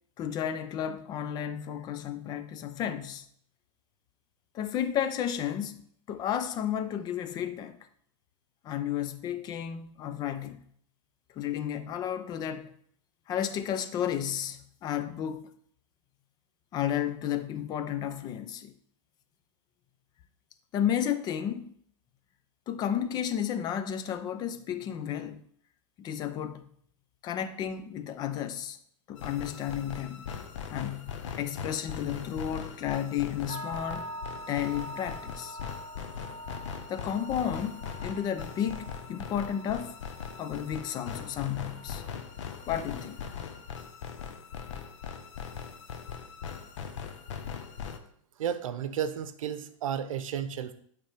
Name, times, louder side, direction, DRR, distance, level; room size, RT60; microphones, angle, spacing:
voice 1, 0.2-3.2 4.5-5.8 6.1-7.8 8.6-10.6 11.4-12.7 13.3-15.5 16.7-18.7 20.7-21.7 22.7-25.4 26.0-26.6 27.2-28.8 29.1-30.3 30.7-34.1 34.5-35.6 36.9-40.0 40.4-42.0 42.7-43.2, left 9 dB, 25° left, 0.5 m, -32 dB
sound 1, 29.2-48.0, left 7 dB, 60° left, 0.9 m, -40 dB
sound 2, 33.5-43.6, right 1 dB, 40° left, 1.5 m, -45 dB
voice 2, 48.4-50.7, right 8 dB, 75° right, 0.8 m, -33 dB
8.8 x 3.4 x 5.0 m
hypercardioid pair, 140°, 17 cm